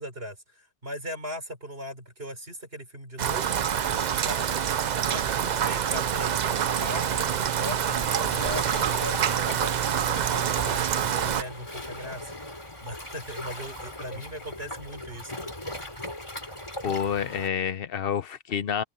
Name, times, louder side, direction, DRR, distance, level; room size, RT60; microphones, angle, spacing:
voice 1, 0.0-4.6 5.1-8.6 9.0-10.9 11.2-12.3 12.8-15.5, equal, 65° right, 5.6 m, -39 dB
Rain, 3.2-11.4, right 8 dB, 50° right, 0.6 m, -26 dB
Waves surf, 7.1-17.5, left 1 dB, 25° left, 3.7 m, -39 dB
voice 2, 16.8-18.8, left 8 dB, 65° left, 0.9 m, -28 dB
open air
omnidirectional pair, 1.1 m